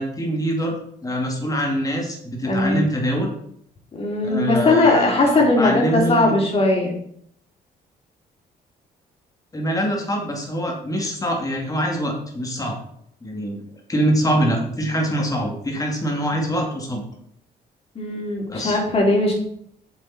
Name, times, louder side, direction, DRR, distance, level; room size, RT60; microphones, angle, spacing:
voice 1, 0.0-3.3 4.2-6.3 9.5-12.8 13.2-13.6 13.9-17.0 18.5-18.8, equal, 20° left, 0 dB, 2.6 m, -24 dB
voice 2, 2.4-2.9 3.9-6.9 17.9-19.3, left 2 dB, 35° left, -1 dB, 3.4 m, -19 dB
8.0 x 7.2 x 4.4 m, 0.67 s
cardioid pair, 110°, 17 cm